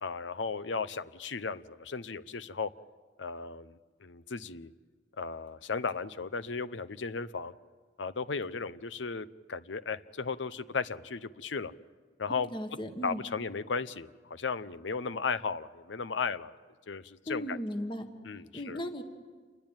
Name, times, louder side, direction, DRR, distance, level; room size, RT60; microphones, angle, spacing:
voice 1, 0.0-2.7 3.2-4.7 5.2-7.5 8.0-11.7 12.2-12.5 13.0-16.5 16.9-17.8 18.2-18.8, left 5 dB, 75° left, 14 dB, 0.8 m, -35 dB
voice 2, 12.5-13.2 17.3-18.1 18.5-19.0, equal, 25° left, 6 dB, 1.6 m, -36 dB
28.0 x 21.0 x 9.0 m, 1.5 s
head